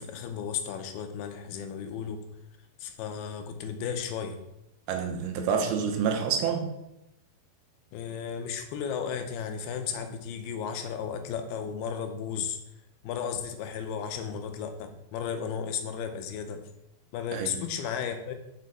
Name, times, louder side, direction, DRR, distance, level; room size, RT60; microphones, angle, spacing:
voice 1, 0.0-2.2 2.8-4.4 7.9-12.6 13.0-16.6 17.1-18.3, left 7 dB, 90° left, 6 dB, 2.7 m, -34 dB
voice 2, 4.9-6.7 17.3-17.5, right 6 dB, 90° right, 4 dB, 2.8 m, -28 dB
6.4 x 6.2 x 4.1 m, 0.87 s
omnidirectional pair, 4.4 m